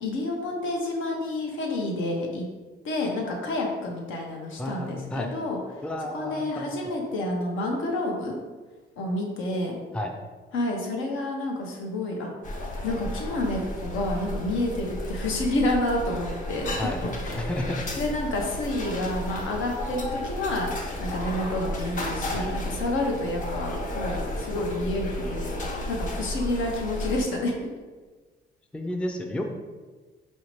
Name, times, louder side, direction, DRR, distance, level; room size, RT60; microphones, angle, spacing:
voice 1, 0.0-2.5 2.8-5.6 6.1-8.4 9.0-9.8 10.5-12.3 12.8-16.9 17.2-17.5 18.0-20.7 21.0-25.5 25.9-27.5, left 1 dB, 80° left, 0 dB, 0.8 m, -29 dB
voice 2, 4.6-5.3 5.8-6.7 9.9-10.1 16.8-17.0 17.4-17.8 22.3-22.5 28.7-29.4, left 1 dB, 5° left, 3 dB, 0.3 m, -31 dB
sound 1, 12.4-27.2, left 1 dB, 40° left, 0.7 m, -33 dB
4.2 x 2.7 x 3.0 m, 1.4 s
cardioid pair, 90°, 20 cm